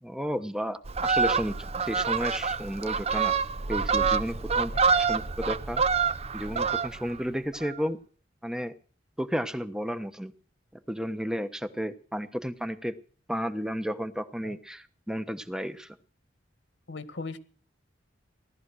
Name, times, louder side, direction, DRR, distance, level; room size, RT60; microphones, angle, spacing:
voice 1, 0.0-3.4 3.7-5.8 6.3-8.0 8.4-8.7 9.2-10.3 10.9-12.9 13.3-16.0, equal, 5° right, 10 dB, 1.1 m, -32 dB
Fowl, 0.8-7.2 7.5-7.8, right 5 dB, 35° right, 0.7 m, -27 dB
voice 2, 4.7-5.1 7.3-7.4 14.4-14.6 16.9-17.4, left 3 dB, 75° left, 11 dB, 1.7 m, -39 dB
18.0 x 12.5 x 6.3 m, 0.42 s
head